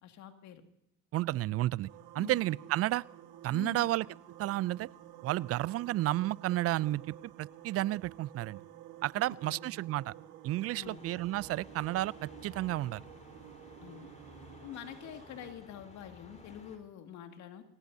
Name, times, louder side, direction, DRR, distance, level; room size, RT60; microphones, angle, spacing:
voice 1, 0.0-0.6 2.1-2.4 3.5-3.9 9.4-9.7 10.7-11.1 13.8-14.1 14.6-17.6, left 9 dB, 65° left, 6 dB, 2.1 m, -46 dB
voice 2, 1.1-1.9 2.1-3.0 3.4-4.1 4.4-4.9 5.2-8.6 9.0-10.1 10.4-13.0, right 16 dB, 50° right, 24 dB, 0.5 m, -32 dB
sound 1, 1.9-15.5, right 12 dB, 75° right, 1.7 m, -52 dB
sound 2, 10.8-16.8, left 3 dB, 25° left, 4.1 m, -55 dB
25.5 x 18.5 x 2.7 m, 0.82 s
supercardioid pair, 75°, 31 cm